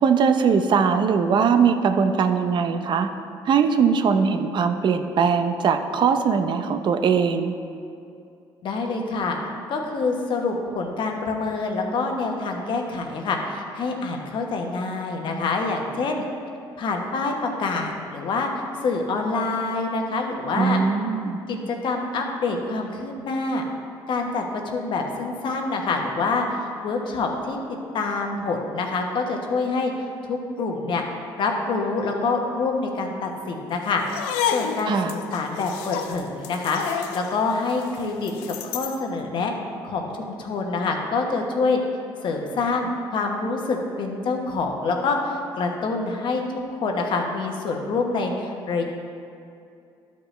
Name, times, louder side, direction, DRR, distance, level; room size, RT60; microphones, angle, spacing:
voice 1, 0.0-3.1 3.5-7.5 20.6-21.4 34.9-35.1, right 6 dB, 55° right, 7 dB, 0.7 m, -20 dB
voice 2, 8.6-9.4 9.7-16.2 16.8-18.5 18.8-20.8 21.5-23.6 24.1-29.9 30.2-31.0 31.4-34.0 34.4-39.5 39.8-41.8 42.2-46.4 46.7-48.8, left 3 dB, 60° left, 2 dB, 1.2 m, -26 dB
sound 1, 34.0-39.0, left 8 dB, 90° left, 0.5 m, -30 dB
11.5 x 5.3 x 3.3 m, 2.5 s
supercardioid pair, 70°, 9 cm